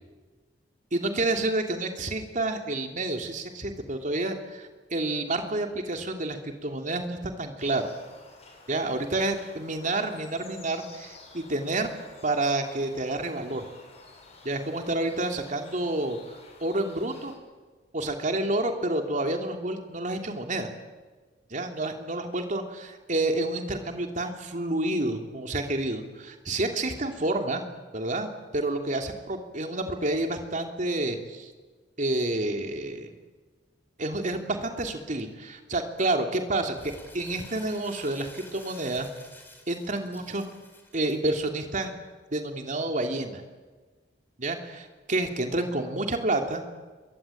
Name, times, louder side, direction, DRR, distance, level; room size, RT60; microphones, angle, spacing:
voice 1, 0.9-7.9 8.7-11.9 12.2-13.6 14.4-17.3 17.9-20.7 21.5-27.6 27.9-31.5 32.0-33.1 34.0-39.1 39.7-40.4 40.9-41.9 42.3-43.4 44.4-46.6, right 2 dB, 45° right, 4 dB, 3.0 m, -29 dB
sound 1, 7.6-17.3, left 3 dB, 35° left, 7.2 m, -51 dB
Crumpling crinkling, 36.7-41.2, left 2 dB, 10° left, 4.3 m, -49 dB
27.0 x 23.0 x 8.7 m, 1.4 s
head